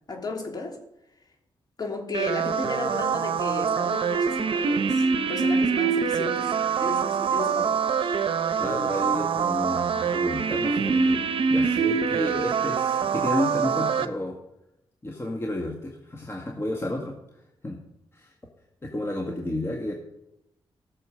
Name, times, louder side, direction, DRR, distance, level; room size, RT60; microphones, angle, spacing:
voice 1, 0.1-0.8 1.8-6.5 6.8-7.8, left 2 dB, 45° left, 3.1 m, -33 dB
sound 1, 2.1-14.1, right 6 dB, 65° right, 0.8 m, -25 dB
voice 2, 8.6-11.2 11.5-14.4 15.0-17.1 17.6-17.8 18.1-18.3 18.8-19.9, left 1 dB, 25° left, 1.8 m, -31 dB
15.0 x 6.9 x 6.4 m
cardioid pair, 75°, 10 cm